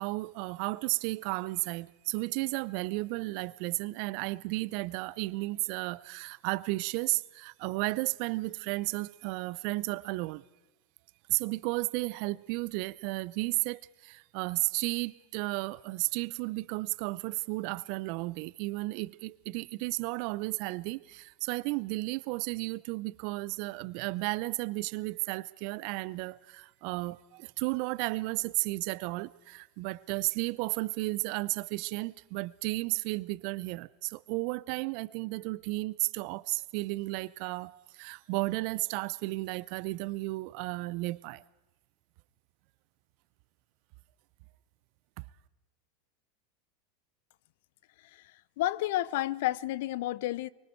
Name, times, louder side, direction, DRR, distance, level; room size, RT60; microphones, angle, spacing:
voice 1, 0.0-10.4 11.3-41.4, right 23 dB, 55° right, 0.6 m, -33 dB
voice 2, 48.0-50.5, left 15 dB, 65° left, 0.6 m, -31 dB
24.0 x 23.5 x 4.6 m
hypercardioid pair, 90°, 0 cm